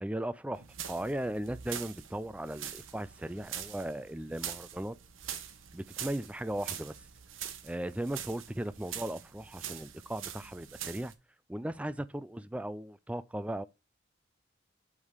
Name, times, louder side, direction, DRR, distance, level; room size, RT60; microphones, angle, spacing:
voice 1, 0.0-5.0 5.7-7.0 7.6-11.1 11.5-13.6, right 1 dB, 5° right, 0.3 m, -37 dB
sound 1, 0.5-11.1, right 9 dB, 85° right, 1.0 m, -44 dB
5.5 x 4.8 x 6.5 m
head